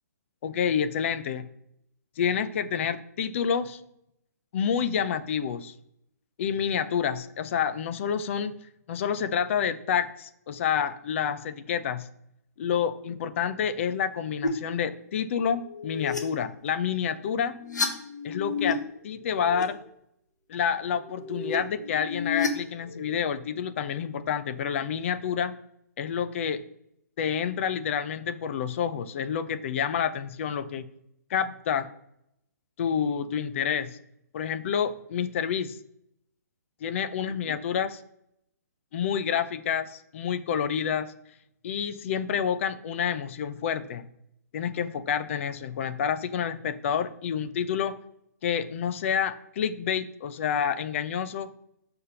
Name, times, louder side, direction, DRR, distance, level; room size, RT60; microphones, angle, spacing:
voice 1, 0.4-1.4 2.2-3.8 4.5-5.7 6.4-8.5 8.9-12.1 12.6-17.6 18.2-19.8 20.5-25.5 26.0-26.6 27.2-30.8 31.3-31.9 32.8-33.9 34.3-35.8 36.8-38.0 38.9-41.1 41.6-44.1 44.5-47.9 48.4-51.5, left 7 dB, 45° left, 12 dB, 0.6 m, -28 dB
sound 1, 14.4-14.5 15.5-16.2 17.4-18.7 19.1-19.6 20.8-23.2, left 5 dB, 85° left, 1.4 m, -32 dB
6.5 x 3.5 x 5.6 m, 0.75 s
hypercardioid pair, 140°, 9 cm